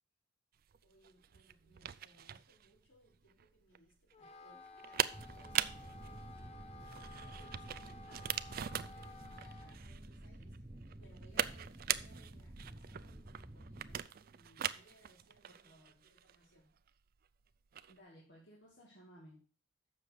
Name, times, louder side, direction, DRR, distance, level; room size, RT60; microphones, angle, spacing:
sound 1, 0.6-18.0, right 10 dB, 55° right, 0.4 m, -42 dB
voice 1, 0.8-15.7 16.0-16.7, right 1 dB, 85° left, -3 dB, 4.4 m, -67 dB
Wind instrument woodwind instrument, 4.1-9.8, left 2 dB, 35° left, 0.6 m, -54 dB
sound 2, 5.1-14.0, right 1 dB, 20° right, 0.8 m, -51 dB
voice 2, 8.9-9.4 15.5-16.0 17.9-19.4, equal, 65° left, -4 dB, 2.3 m, -60 dB
7.5 x 6.4 x 6.5 m, 0.42 s
head